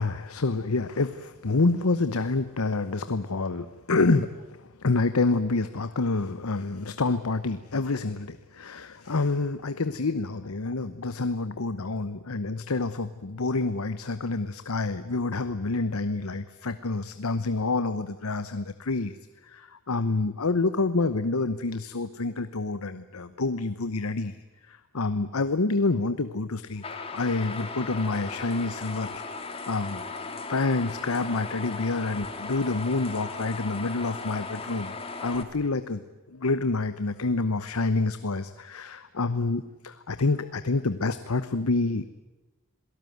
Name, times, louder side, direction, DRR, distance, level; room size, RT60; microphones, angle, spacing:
voice 1, 0.0-19.2 19.4-29.2 29.7-30.2 30.5-35.0 35.2-36.0 36.3-42.0, left 3 dB, 85° left, 12 dB, 0.9 m, -28 dB
sound 1, 26.8-35.4, left 3 dB, 25° left, 2.2 m, -37 dB
27.0 x 18.0 x 9.4 m, 1.1 s
head